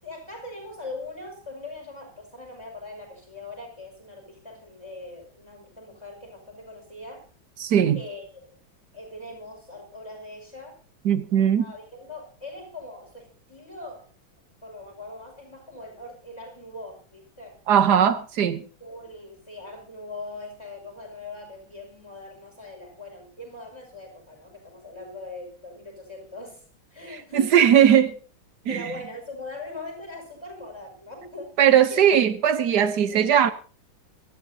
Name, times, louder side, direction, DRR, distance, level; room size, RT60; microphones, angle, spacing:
voice 1, 0.0-7.3 7.9-8.6 8.9-10.8 11.4-14.1 14.6-17.6 18.8-26.6 26.9-27.8 28.7-32.1 32.9-33.5, left 2 dB, 15° left, 5.4 m, -41 dB
voice 2, 7.6-8.0 11.0-11.7 17.7-18.6 27.3-28.1 28.7-28.9 31.6-33.5, right 9 dB, 60° right, 1.4 m, -19 dB
24.0 x 13.5 x 2.8 m
omnidirectional pair, 2.1 m